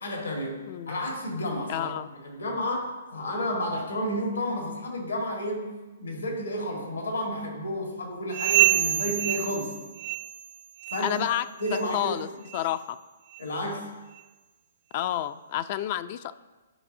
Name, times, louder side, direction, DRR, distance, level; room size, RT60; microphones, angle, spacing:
voice 1, 0.0-5.7 6.0-9.8 10.9-11.2 11.6-12.2 13.4-13.9, left 1 dB, 80° left, 0 dB, 1.8 m, -31 dB
voice 2, 1.7-2.1 11.0-11.5 11.9-13.0 14.9-16.3, left 12 dB, 45° left, 13 dB, 0.3 m, -30 dB
sound 1, 8.3-10.5 10.8-11.2 11.6-11.9 12.5-12.6 13.3-13.4 14.2-14.3, right 15 dB, 50° right, 0.3 m, -26 dB
13.0 x 5.3 x 2.7 m, 1.2 s
hypercardioid pair, 130°, 0 cm